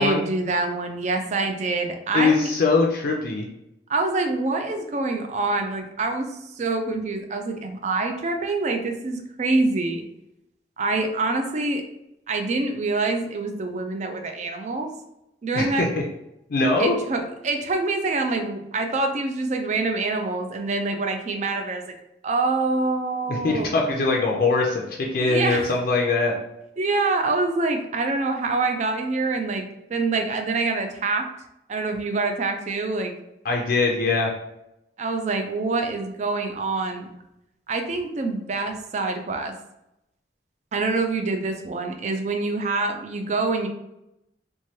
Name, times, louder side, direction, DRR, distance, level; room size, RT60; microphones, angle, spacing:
voice 1, 0.0-2.5 3.9-6.3 6.6-10.1 10.8-11.8 12.3-14.9 15.4-15.9 16.8-21.8 22.2-23.7 25.2-25.7 26.8-31.3 31.7-33.1 35.0-37.1 37.7-39.5 40.7-43.7, right 3 dB, 40° right, 5 dB, 0.4 m, -25 dB
voice 2, 2.1-3.4 15.5-16.0 16.5-17.0 23.3-24.8 25.1-26.4 33.4-34.3, left 3 dB, 55° left, 0 dB, 0.4 m, -22 dB
3.1 x 2.2 x 2.7 m, 0.85 s
head